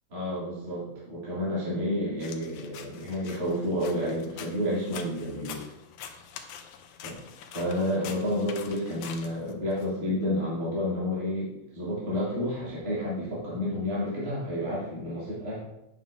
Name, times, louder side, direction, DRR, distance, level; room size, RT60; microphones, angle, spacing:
voice 1, 0.1-5.7 7.0-7.1 7.5-15.6, left 1 dB, 30° right, -9 dB, 2.7 m, -30 dB
sound 1, 2.2-9.9, left 8 dB, 80° left, 1.4 m, -45 dB
9.1 x 6.4 x 2.5 m, 0.89 s
omnidirectional pair, 3.4 m